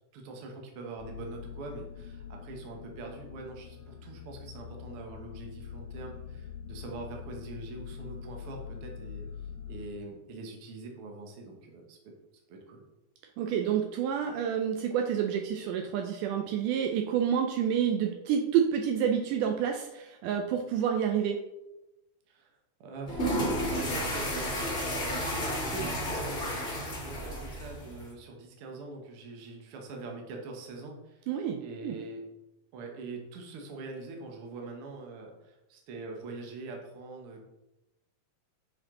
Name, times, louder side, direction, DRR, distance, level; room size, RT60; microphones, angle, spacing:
voice 1, 0.1-9.2 9.7-12.1 12.5-12.8 22.3-22.5 22.8-24.5 25.7-31.3 31.6-32.2 32.7-37.4, right 3 dB, 60° right, 1 dB, 1.5 m, -43 dB
sound 1, 1.0-9.9, left 7 dB, 80° left, 2.9 m, -44 dB
voice 2, 13.4-21.4 31.3-32.0, right 8 dB, 80° right, 4 dB, 2.0 m, -28 dB
sound 2, 23.1-28.1, equal, 35° left, 1.1 m, -32 dB
7.6 x 4.4 x 3.7 m, 0.95 s
omnidirectional pair, 3.9 m